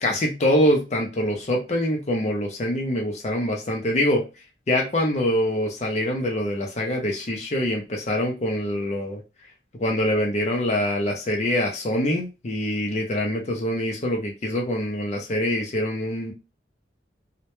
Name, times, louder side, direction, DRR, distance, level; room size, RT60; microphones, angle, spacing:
voice 1, 0.0-4.2 4.7-9.2 9.8-16.3, left 1 dB, 35° left, 1 dB, 0.5 m, -24 dB
2.1 x 2.1 x 2.9 m, 0.28 s
head